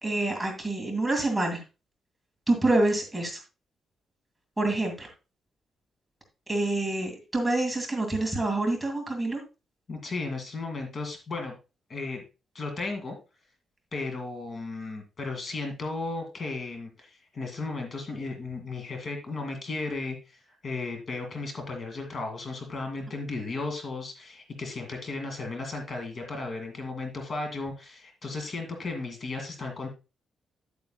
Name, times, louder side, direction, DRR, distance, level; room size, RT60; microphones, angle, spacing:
voice 1, 0.0-1.6 2.5-3.4 4.6-5.1 6.5-9.4, right 2 dB, 10° right, 1 dB, 2.1 m, -27 dB
voice 2, 9.9-11.5 11.9-12.2 12.5-13.2 13.9-29.9, left 3 dB, 40° left, 4 dB, 1.9 m, -35 dB
9.4 x 8.7 x 2.2 m, 0.30 s
cardioid pair, 145°, 0 cm